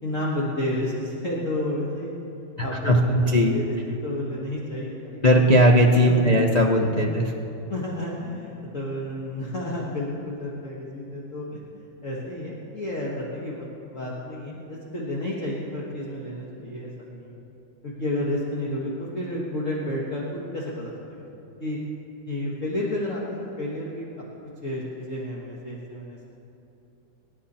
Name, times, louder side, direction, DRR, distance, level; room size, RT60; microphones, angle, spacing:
voice 1, 0.0-2.1 2.6-3.6 4.0-5.4 6.0-6.4 6.9-7.0 7.7-17.4 17.8-21.3 21.6-21.8 22.3-24.1 24.6-26.3, left 1 dB, 40° left, -5 dB, 1.9 m, -31 dB
voice 2, 2.6-3.5 5.2-7.3, equal, 90° left, 0 dB, 0.3 m, -18 dB
25.5 x 10.5 x 4.3 m, 2.9 s
omnidirectional pair, 2.2 m